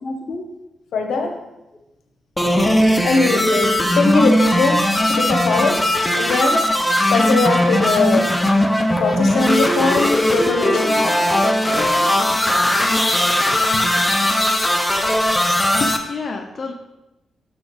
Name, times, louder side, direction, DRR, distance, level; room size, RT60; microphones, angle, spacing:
voice 1, 0.0-0.5 15.8-16.7, left 3 dB, 45° left, 2 dB, 0.6 m, -28 dB
voice 2, 0.9-1.4 3.0-6.7 7.1-8.3 9.0-12.0 12.8-12.9, left 3 dB, 80° left, 4 dB, 1.0 m, -21 dB
sound 1, 2.4-16.0, left 1 dB, 10° left, 0.7 m, -18 dB
6.9 x 4.2 x 5.0 m, 0.96 s
cardioid pair, 95°, 0 cm